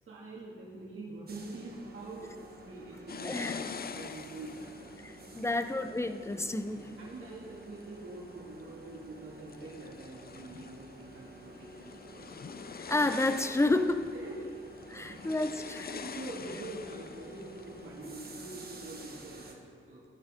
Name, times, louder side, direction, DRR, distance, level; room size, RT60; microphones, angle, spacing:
voice 1, 0.1-2.3 2.6-4.9 5.3-5.6 6.7-12.3 14.1-14.6 14.9-15.3 15.9-20.0, right 2 dB, 80° right, -5 dB, 2.4 m, -45 dB
sound 1, 1.3-19.5, right 2 dB, 50° right, 1.7 m, -51 dB
East coast of the Black Sea, 3.1-7.8 8.4-9.0 9.4-18.6, left 6 dB, 50° left, 0.6 m, -46 dB
voice 2, 3.2-3.6 5.0-6.8 12.9-14.1 14.9-15.9, left 2 dB, 15° left, 9 dB, 0.7 m, -30 dB
14.0 x 13.0 x 3.7 m, 2.1 s
cardioid pair, 80°, 21 cm